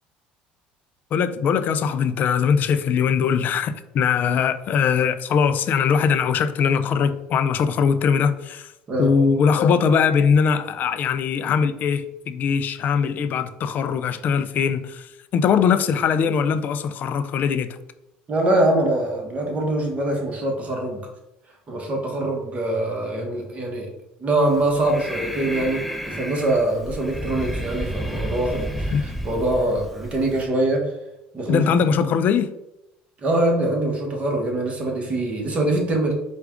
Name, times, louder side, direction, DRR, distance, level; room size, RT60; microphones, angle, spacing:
voice 1, 1.1-8.7 9.0-17.8 28.9-29.1 31.5-32.5, left 6 dB, 50° left, 0.4 m, -21 dB
voice 2, 18.3-21.1 21.7-23.9 24.2-30.9 31.3-31.6 33.2-36.1, right 1 dB, 35° right, 1.2 m, -23 dB
Breathing, 24.5-30.5, equal, ahead, 0.6 m, -32 dB
4.6 x 2.4 x 3.6 m
supercardioid pair, 90°, 4 cm